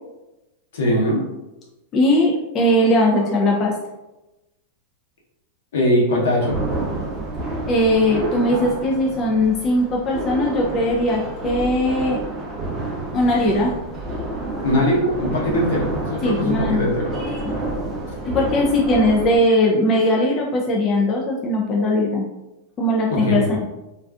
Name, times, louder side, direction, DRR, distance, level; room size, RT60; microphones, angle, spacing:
voice 1, 0.7-1.2 5.7-6.6 14.6-17.1 23.1-23.5, left 1 dB, 75° left, -3 dB, 0.9 m, -20 dB
voice 2, 1.9-3.8 7.7-12.2 13.1-13.7 16.2-16.9 18.2-22.3 22.8-23.6, left 1 dB, 30° left, -2 dB, 0.4 m, -19 dB
sound 1, 6.4-19.4, right 2 dB, 25° right, 0.5 m, -29 dB
2.4 x 2.2 x 2.3 m, 1.0 s
hypercardioid pair, 125°, 0 cm